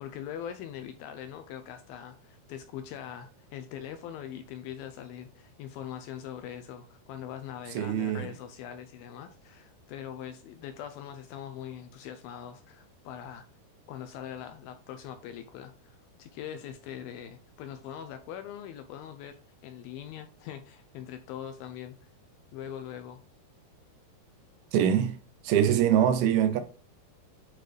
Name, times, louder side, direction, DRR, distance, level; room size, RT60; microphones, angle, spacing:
voice 1, 0.0-13.5 13.9-22.1 22.5-23.2, left 9 dB, 80° left, 2.2 m, -42 dB
voice 2, 7.8-8.3 24.7-25.2 25.4-26.6, right 10 dB, 80° right, 2.4 m, -23 dB
8.8 x 3.9 x 3.3 m
omnidirectional pair, 4.7 m